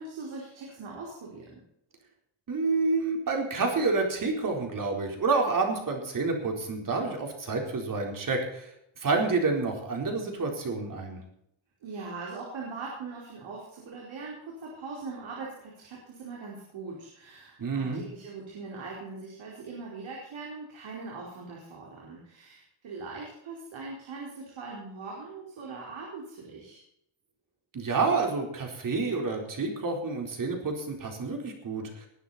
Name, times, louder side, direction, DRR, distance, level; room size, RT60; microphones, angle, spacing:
voice 1, 0.0-1.6 11.8-26.8, right 4 dB, 65° right, -3 dB, 4.9 m, -41 dB
voice 2, 2.5-11.2 17.6-18.0 27.7-32.1, right 3 dB, 40° right, 2 dB, 4.3 m, -29 dB
20.5 x 9.6 x 4.3 m, 0.76 s
cardioid pair, 135°, 50 cm